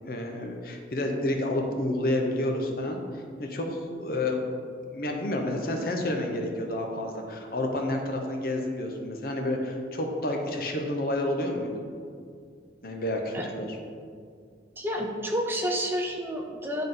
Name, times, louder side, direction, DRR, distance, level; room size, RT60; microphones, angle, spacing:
voice 1, 0.0-4.4 4.9-11.8 12.8-13.8, left 1 dB, 55° left, 2 dB, 0.8 m, -30 dB
voice 2, 14.8-16.8, equal, 10° right, 1 dB, 0.5 m, -29 dB
9.8 x 3.7 x 3.8 m, 2.2 s
head